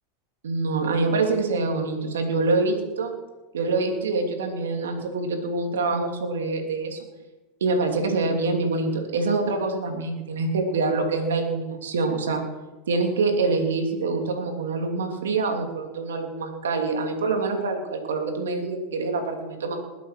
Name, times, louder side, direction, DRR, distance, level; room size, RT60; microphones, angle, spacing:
voice 1, 0.4-3.1 3.5-7.0 7.6-12.4 12.9-19.8, right 3 dB, 90° right, 3 dB, 2.9 m, -25 dB
20.5 x 8.2 x 6.0 m, 1.1 s
hypercardioid pair, 110°, 0 cm